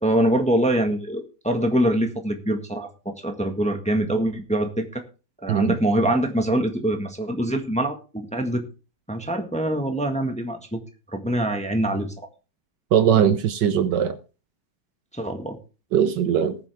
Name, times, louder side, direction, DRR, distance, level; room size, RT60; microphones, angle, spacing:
voice 1, 0.0-5.0 5.4-8.6 9.1-10.8 11.1-12.1 15.1-15.6, right 1 dB, 5° left, 1.3 m, -24 dB
voice 2, 12.9-14.2 15.9-16.6, right 9 dB, 70° right, 1.3 m, -20 dB
19.5 x 7.2 x 3.5 m
omnidirectional pair, 2.1 m